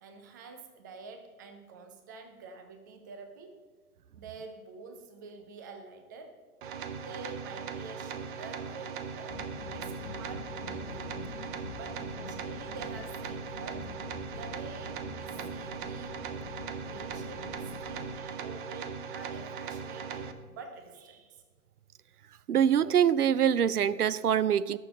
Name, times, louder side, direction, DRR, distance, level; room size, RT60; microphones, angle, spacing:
voice 1, 0.0-3.6 4.1-6.4 7.0-9.4 9.7-11.2 11.8-13.9 14.3-16.2 16.9-21.4, right 4 dB, 15° right, 7 dB, 0.4 m, -48 dB
sound 1, 6.6-20.3, right 6 dB, 35° right, 0.8 m, -39 dB
sound 2, 9.3-18.2, left 5 dB, 75° left, 1.0 m, -46 dB
voice 2, 22.5-24.8, right 9 dB, 85° right, 19 dB, 0.5 m, -24 dB
17.0 x 6.9 x 4.0 m, 1.4 s
figure-of-eight pair, 120°, 44 cm